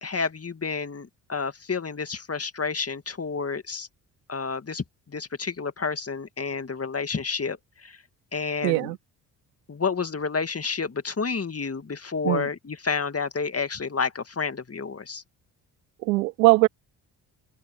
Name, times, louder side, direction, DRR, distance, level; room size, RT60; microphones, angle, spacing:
voice 1, 0.0-3.9 4.3-7.6 7.8-8.0 8.3-8.9 9.7-15.2, left 5 dB, 30° left, 2.1 m, -30 dB
voice 2, 8.6-9.0 12.2-12.5 16.0-16.7, right 21 dB, 90° right, 2.2 m, -20 dB
open air
hypercardioid pair, 45°, 48 cm